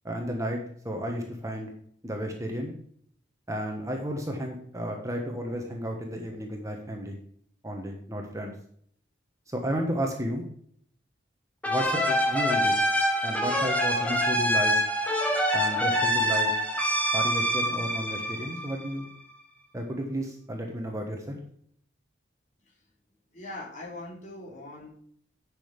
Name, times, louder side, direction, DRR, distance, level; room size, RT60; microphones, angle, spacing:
voice 1, 0.0-0.6 0.8-1.7 2.0-2.7 3.5-7.2 7.6-8.5 9.5-10.4 11.7-12.8 13.2-14.8 15.5-16.5 17.1-19.1 19.7-21.4, equal, 15° right, 2 dB, 1.3 m, -32 dB
sound 1, 11.6-19.1, equal, 10° left, 1.6 m, -25 dB
voice 2, 23.3-24.9, left 2 dB, 40° left, -3 dB, 4.0 m, -41 dB
10.0 x 6.3 x 5.2 m, 0.63 s
head